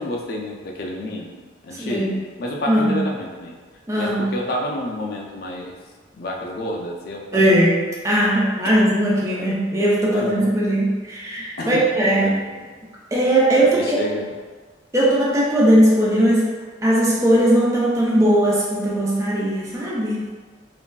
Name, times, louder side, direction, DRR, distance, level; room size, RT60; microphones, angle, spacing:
voice 1, 0.0-3.6 4.0-5.8 6.1-7.6 9.4-9.5 10.1-10.5 11.6-12.6 13.6-14.3, left 1 dB, 55° left, 0 dB, 0.4 m, -30 dB
voice 2, 1.8-2.2 2.7-3.0 3.9-4.3 7.3-12.3 13.1-14.1 14.9-16.5 16.8-20.3, right 1 dB, 15° right, -5 dB, 0.4 m, -19 dB
3.0 x 2.5 x 2.2 m, 1.4 s
head